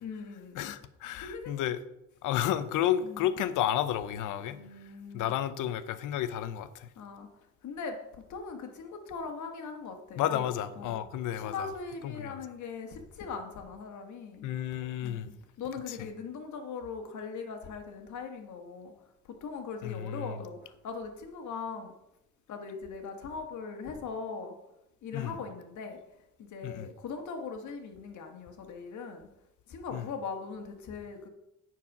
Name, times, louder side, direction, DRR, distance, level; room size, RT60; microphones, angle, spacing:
voice 1, 0.0-0.7 1.1-1.6 3.0-3.3 4.5-5.3 6.9-7.3 7.6-10.5 10.8-11.0 11.3-14.5 15.0-18.9 19.3-21.9 22.5-24.5 25.0-26.0 26.4-29.3 29.7-31.3, left 5 dB, 70° left, 1.7 m, -40 dB
voice 2, 0.6-1.8 2.2-4.6 5.1-6.9 10.2-11.7 12.0-12.4 14.4-15.3 15.9-16.1 19.8-20.4 25.1-25.4 26.6-26.9 29.9-30.1, left 11 dB, 90° left, 0.7 m, -32 dB
9.6 x 4.6 x 6.0 m
cardioid pair, 90°, 30 cm